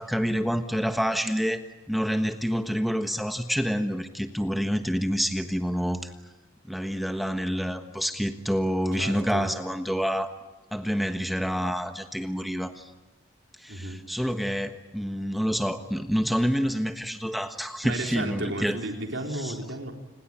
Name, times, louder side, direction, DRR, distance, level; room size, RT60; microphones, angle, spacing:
voice 1, 0.0-6.1 6.6-10.3 10.7-12.9 13.6-18.8 19.3-19.6, equal, ahead, 7 dB, 1.3 m, -28 dB
voice 2, 9.0-9.5 13.7-14.0 17.8-19.9, right 1 dB, 70° right, 3 dB, 4.1 m, -33 dB
29.5 x 20.5 x 9.0 m, 1.1 s
head